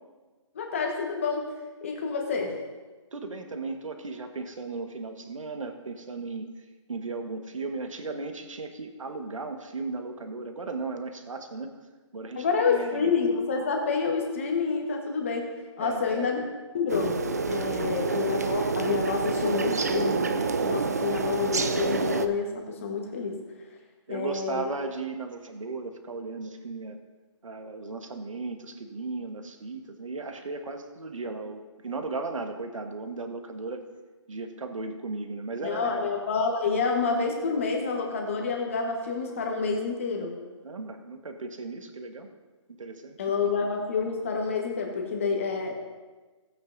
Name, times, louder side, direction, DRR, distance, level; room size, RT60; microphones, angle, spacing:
voice 1, 0.5-1.5 1.8-2.6 12.4-15.5 15.8-16.4 16.7-23.4 24.1-24.7 35.6-40.3 43.2-45.7, left 5 dB, 25° left, 2 dB, 1.2 m, -28 dB
voice 2, 3.1-6.5 6.9-11.8 12.1-13.1 15.8-16.3 17.8-17.9 24.1-27.0 27.4-33.9 34.3-36.1 40.6-42.3 42.8-43.2, right 3 dB, 85° right, 5 dB, 1.4 m, -36 dB
sound 1, 16.9-22.3, right 4 dB, 30° right, 0.4 m, -28 dB
16.5 x 8.9 x 2.6 m, 1.3 s
hypercardioid pair, 175°, 16 cm